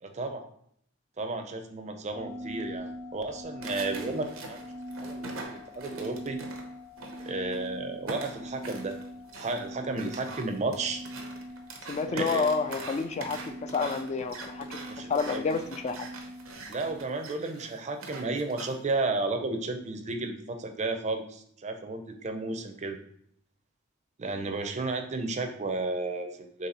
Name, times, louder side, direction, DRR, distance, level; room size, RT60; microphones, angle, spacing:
voice 1, 0.0-0.5 1.2-4.7 5.0-6.4 7.2-9.0 9.4-11.0 12.1-12.5 14.9-15.6 16.7-23.0 24.2-26.7, right 3 dB, 35° right, 6 dB, 0.5 m, -33 dB
sound 1, 2.1-17.0, equal, 65° left, 1.5 m, -42 dB
sound 2, 3.6-7.7 8.1-18.9, right 3 dB, 80° right, 0.8 m, -43 dB
voice 2, 11.8-16.1, left 4 dB, 35° left, 9 dB, 0.3 m, -30 dB
4.1 x 3.2 x 4.0 m, 0.68 s
head